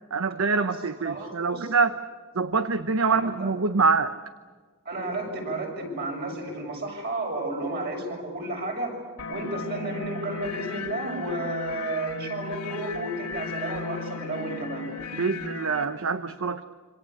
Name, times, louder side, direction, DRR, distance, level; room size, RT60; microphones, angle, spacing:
voice 1, 0.1-1.9 2.3-4.1 15.2-16.6, right 4 dB, 60° right, 10 dB, 0.9 m, -25 dB
voice 2, 1.0-1.7 3.0-3.5 4.9-9.0 9.3-14.9, right 2 dB, 45° right, 1 dB, 7.0 m, -32 dB
sound 1, 9.2-15.8, left 5 dB, 85° left, 2.8 m, -36 dB
27.0 x 25.5 x 8.3 m, 1.5 s
head